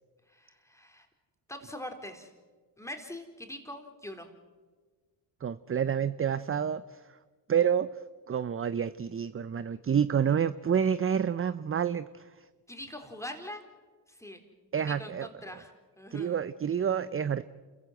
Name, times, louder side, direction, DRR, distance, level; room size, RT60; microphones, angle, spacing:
voice 1, 0.3-1.1 1.5-2.3 2.8-4.3 12.7-13.6 14.1-14.4 14.8-15.7 16.0-16.4, left 1 dB, 5° left, 5 dB, 4.2 m, -43 dB
voice 2, 5.4-7.2 7.5-7.9 8.3-12.4 14.7-15.3 16.1-17.4, right 8 dB, 30° right, 15 dB, 0.7 m, -28 dB
28.0 x 15.0 x 7.7 m, 1.4 s
supercardioid pair, 60°, 47 cm